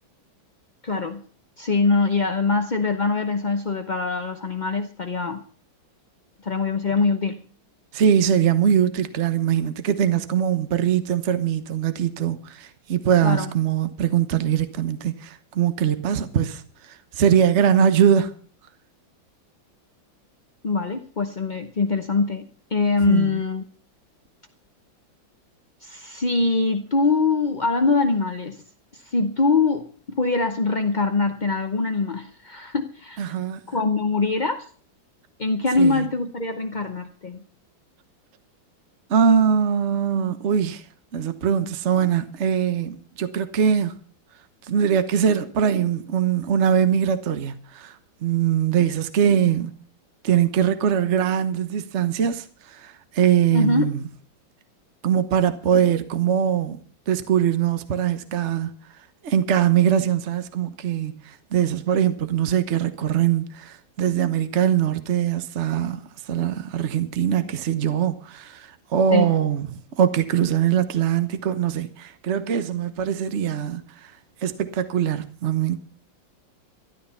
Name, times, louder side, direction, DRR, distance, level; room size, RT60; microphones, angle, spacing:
voice 1, 0.8-1.2 1.6-5.4 6.4-7.4 13.2-13.5 20.6-23.6 25.8-28.6 28.9-29.9 30.2-33.2 33.7-34.7 35.4-37.4 53.5-53.9 69.1-69.3, left 3 dB, 55° left, 0.5 m, -23 dB
voice 2, 7.9-16.6 16.9-18.3 23.0-23.4 33.2-33.6 35.8-36.0 39.1-40.8 41.1-43.9 44.7-47.9 48.2-49.7 50.2-54.0 55.0-56.8 57.1-58.7 59.2-66.0 66.3-69.6 70.0-74.1 74.4-75.8, right 8 dB, 45° right, 1.1 m, -22 dB
13.0 x 12.0 x 5.6 m
omnidirectional pair, 2.2 m